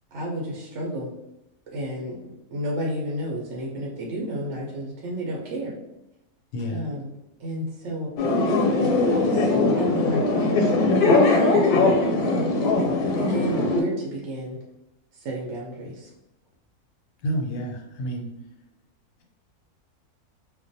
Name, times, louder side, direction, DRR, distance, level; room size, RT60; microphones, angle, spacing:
voice 1, 0.1-1.1 1.7-5.7 6.7-7.1 7.4-8.1 9.0-10.7 11.2-11.9 13.1-14.6 15.1-16.1, equal, 65° right, -3 dB, 0.8 m, -31 dB
voice 2, 6.5-6.9 17.2-18.3, equal, 70° left, 2 dB, 0.8 m, -29 dB
sound 1, 8.2-13.8, left 2 dB, 85° left, 1.1 m, -20 dB
2.3 x 2.2 x 2.6 m, 0.88 s
omnidirectional pair, 1.6 m